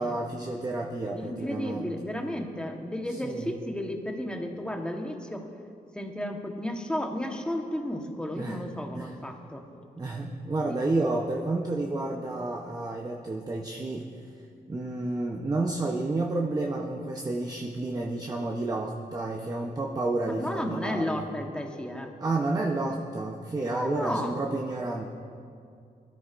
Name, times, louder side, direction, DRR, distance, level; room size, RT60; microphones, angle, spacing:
voice 1, 0.0-1.9 3.1-3.5 8.3-8.6 8.9-9.1 10.0-14.4 14.7-21.2 22.2-25.1, right 2 dB, 25° right, 0 dB, 0.9 m, -30 dB
voice 2, 1.1-5.5 5.9-9.6 10.7-10.8 20.2-22.1 23.6-24.3, left 1 dB, 5° left, 2 dB, 1.2 m, -33 dB
21.5 x 13.0 x 2.6 m, 2.4 s
wide cardioid pair, 115°, 15 cm